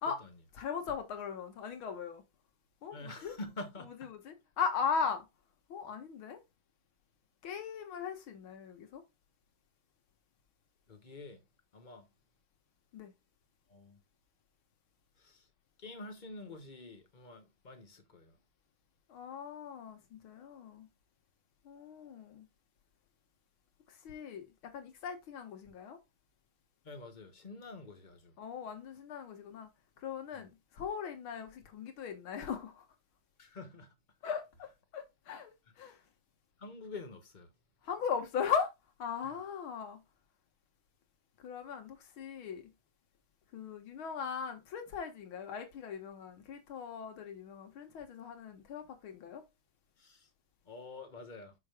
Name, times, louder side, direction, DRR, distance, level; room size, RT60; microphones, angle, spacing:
voice 1, 0.5-2.2 2.8-3.3 4.0-5.3 5.7-6.4 7.4-9.0 12.9-13.1 19.1-20.9 21.7-22.5 23.9-26.0 28.4-29.7 30.0-32.9 34.2-36.0 37.8-38.7 39.0-40.0 41.4-42.7 43.5-49.4, left 6 dB, 90° left, 2.2 m, -39 dB
voice 2, 2.9-4.1 10.9-11.4 11.7-12.1 13.7-14.0 15.2-15.5 15.8-18.4 26.8-28.3 30.3-30.5 33.4-33.9 36.6-37.5 39.2-39.3 50.0-50.3 50.6-51.5, left 2 dB, 30° left, 1.0 m, -47 dB
6.1 x 5.8 x 3.5 m
omnidirectional pair, 2.2 m